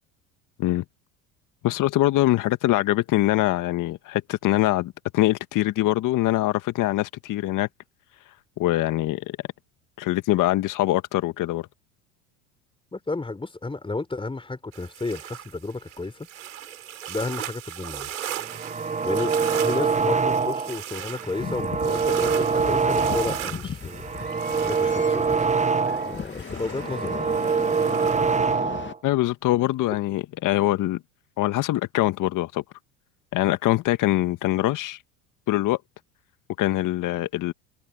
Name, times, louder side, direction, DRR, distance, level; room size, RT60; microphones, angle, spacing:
voice 1, 1.6-7.7 8.6-9.4 10.0-11.7 29.0-31.0 31.4-32.6 33.3-35.0 35.5-35.8 36.6-37.5, left 15 dB, 50° left, 1.9 m, -23 dB
voice 2, 12.9-16.3 17.1-18.1 19.0-24.1 24.6-25.5 26.0-27.4, left 3 dB, 15° left, 4.3 m, -32 dB
sound 1, 14.7-28.4, right 11 dB, 85° right, 7.2 m, -38 dB
sound 2, 18.4-20.8 21.2-23.5 23.9-26.2 26.6-29.0, right 5 dB, 20° right, 1.4 m, -24 dB
sound 3, 21.4-28.9, left 7 dB, 30° left, 2.3 m, -37 dB
hypercardioid pair, 75°, 39 cm